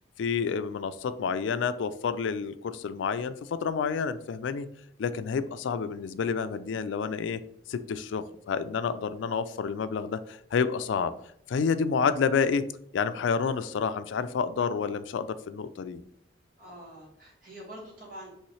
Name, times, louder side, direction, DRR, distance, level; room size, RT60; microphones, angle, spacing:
voice 1, 0.2-4.7 5.0-7.4 7.7-11.1 11.5-12.7 12.9-16.0, left 6 dB, 85° left, 12 dB, 0.3 m, -29 dB
voice 2, 16.6-18.3, equal, 45° right, -3 dB, 1.8 m, -45 dB
5.5 x 3.1 x 3.1 m, 0.73 s
head